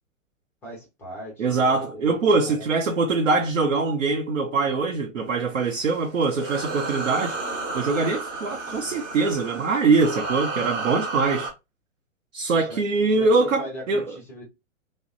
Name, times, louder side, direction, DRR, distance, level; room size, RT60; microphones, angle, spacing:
voice 1, 0.6-2.2 2.4-2.7 12.6-12.8 13.2-14.4, equal, 5° left, 0.5 m, -39 dB
voice 2, 1.4-7.3 7.7-11.5 12.3-14.0, right 4 dB, 70° right, 0.7 m, -23 dB
sound 1, 5.5-11.5, right 3 dB, 30° right, 0.7 m, -32 dB
2.9 x 2.0 x 2.5 m
figure-of-eight pair, 110°, 39 cm